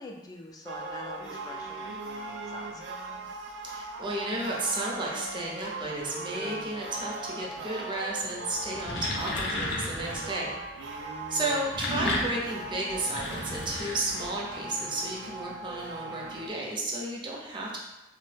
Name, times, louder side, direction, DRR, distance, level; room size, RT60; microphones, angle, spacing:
voice 1, 0.0-2.8 11.3-11.6, left 2 dB, 20° left, 1 dB, 0.3 m, -45 dB
sound 1, 0.7-16.5, right 2 dB, 85° right, 0.4 m, -39 dB
voice 2, 3.6-10.6 11.3-17.8, right 2 dB, 30° right, -2 dB, 0.6 m, -33 dB
sound 2, 8.6-10.3 11.5-14.5, left 1 dB, 80° left, 0.5 m, -33 dB
3.0 x 2.0 x 3.1 m, 0.97 s
head